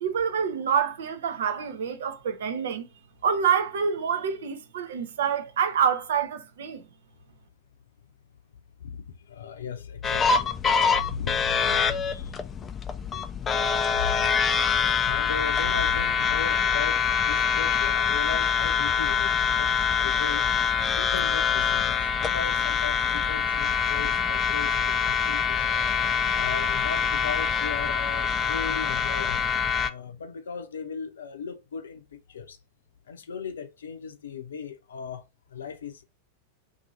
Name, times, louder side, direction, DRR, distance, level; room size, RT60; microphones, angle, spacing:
voice 1, 0.0-2.9 3.2-6.8, right 7 dB, 60° right, 0.6 m, -27 dB
voice 2, 8.8-10.5 11.0-11.4 11.8-12.3 13.6-14.2 14.8-20.5 21.0-25.6 26.3-32.0 32.3-32.6 33.1-35.2 35.5-36.0, left 6 dB, 65° left, 0.6 m, -37 dB
sound 1, 10.0-29.9, left 6 dB, 20° left, 0.3 m, -25 dB
2.7 x 2.7 x 3.8 m
figure-of-eight pair, 90°, 0 cm